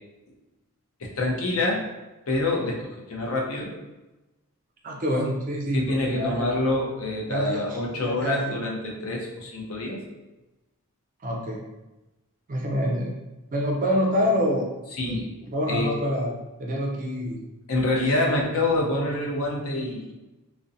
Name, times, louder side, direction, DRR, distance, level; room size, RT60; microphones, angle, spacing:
voice 1, 1.0-1.8 2.3-3.7 5.7-10.0 14.9-15.3 15.7-15.9 17.7-20.1, left 2 dB, 70° left, -1 dB, 0.5 m, -26 dB
voice 2, 4.8-6.5 7.3-8.7 11.2-11.6 12.5-13.2 13.5-14.8 15.1-15.2 15.5-17.4 18.0-18.4, equal, 35° right, -1 dB, 0.4 m, -27 dB
2.4 x 2.1 x 2.6 m, 1.1 s
head